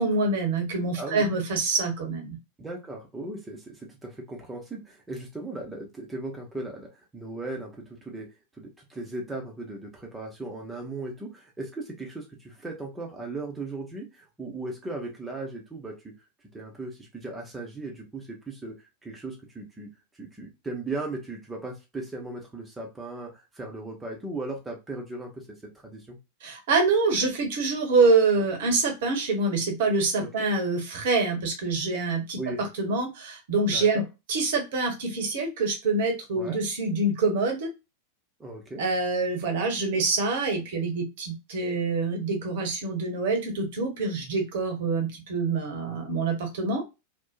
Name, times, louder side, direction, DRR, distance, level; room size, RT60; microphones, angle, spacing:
voice 1, 0.0-2.4 26.4-37.7 38.8-46.8, right 3 dB, 55° right, 3 dB, 0.8 m, -26 dB
voice 2, 1.0-1.3 2.6-8.3 8.6-16.1 16.5-18.7 19.0-26.2 30.2-30.3 32.4-32.6 33.7-34.0 36.3-36.6 38.4-38.8, right 2 dB, 10° right, 1 dB, 0.6 m, -37 dB
2.6 x 2.1 x 2.3 m, 0.25 s
figure-of-eight pair, 90°, 0 cm